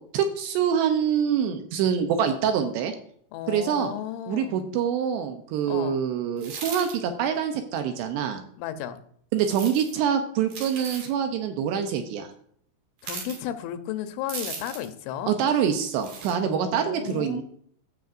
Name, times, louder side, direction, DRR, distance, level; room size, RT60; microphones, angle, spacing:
voice 1, 0.1-3.0 3.5-3.9 4.3-8.4 9.3-12.3 15.3-17.4, right 8 dB, 80° right, 6 dB, 2.5 m, -25 dB
voice 2, 3.3-4.7 5.7-6.1 8.6-9.0 13.0-15.3 16.4-17.4, left 10 dB, 85° left, 9 dB, 3.2 m, -34 dB
sound 1, 6.4-6.9 9.4-9.9 10.5-11.1 13.0-13.4 14.3-14.9 15.9-16.3, right 4 dB, 50° right, 2.9 m, -37 dB
14.5 x 6.6 x 2.5 m, 0.63 s
omnidirectional pair, 5.4 m